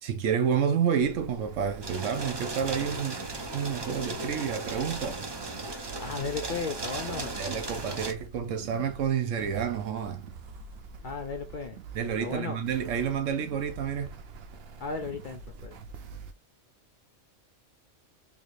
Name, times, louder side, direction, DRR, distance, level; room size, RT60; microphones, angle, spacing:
voice 1, 0.0-5.2 7.3-10.3 11.9-14.2, right 7 dB, 90° right, 1.1 m, -29 dB
sound 1, 1.0-16.3, right 4 dB, 60° right, 0.8 m, -45 dB
sound 2, 1.8-8.1, right 2 dB, 35° right, 0.4 m, -36 dB
voice 2, 6.0-7.4 11.0-11.8 12.2-12.6 14.8-15.8, left 4 dB, 60° left, 0.5 m, -35 dB
3.5 x 3.2 x 2.5 m
omnidirectional pair, 1.3 m